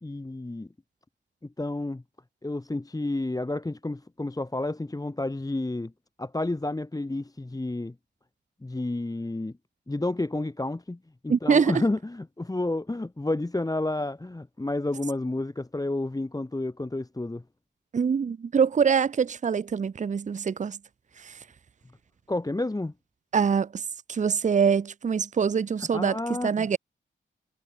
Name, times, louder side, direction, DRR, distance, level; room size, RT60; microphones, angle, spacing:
voice 1, 0.0-0.7 1.4-2.0 2.4-5.9 6.2-7.9 8.6-9.5 9.9-17.4 22.3-22.9 25.9-26.7, left 2 dB, 15° left, 1.0 m, -30 dB
voice 2, 11.3-11.8 17.9-20.8 21.2-21.3 23.3-23.8 24.1-26.2 26.4-26.8, right 6 dB, 35° right, 0.5 m, -24 dB
cardioid pair, 45°, 21 cm